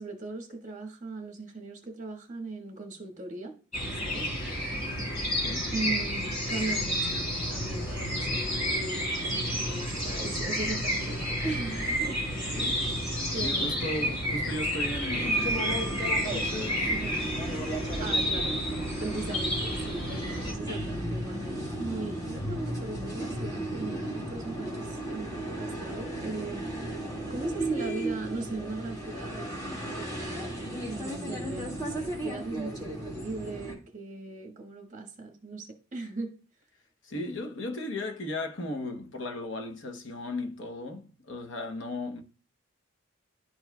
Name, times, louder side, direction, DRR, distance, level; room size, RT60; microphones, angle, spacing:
voice 1, 0.0-3.5 3.9-4.3 5.7-13.0 13.3-13.8 16.9-17.3 18.0-18.6 19.0-36.3, right 2 dB, 35° right, 1.4 m, -39 dB
sound 1, 3.7-20.5, equal, 35° left, 3.0 m, -30 dB
voice 2, 5.4-5.7 12.5-12.8 13.4-16.9 37.0-42.2, left 2 dB, 60° left, 0.8 m, -36 dB
sound 2, 15.1-33.7, right 1 dB, 15° left, 1.9 m, -35 dB
11.5 x 4.5 x 2.2 m
head